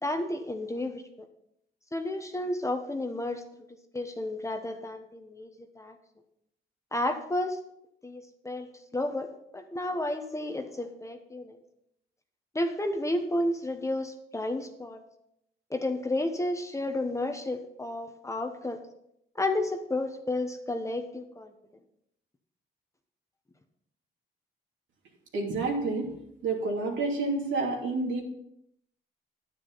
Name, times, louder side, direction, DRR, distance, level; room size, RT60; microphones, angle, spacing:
voice 1, 0.0-1.0 1.9-6.0 6.9-7.6 8.0-11.6 12.5-15.0 15.7-18.8 19.4-21.5, left 1 dB, 15° left, 6 dB, 1.2 m, -32 dB
voice 2, 25.3-26.1 26.4-28.2, right 3 dB, 75° right, 0 dB, 2.8 m, -29 dB
9.7 x 9.6 x 4.1 m, 0.76 s
cardioid pair, 90°, 20 cm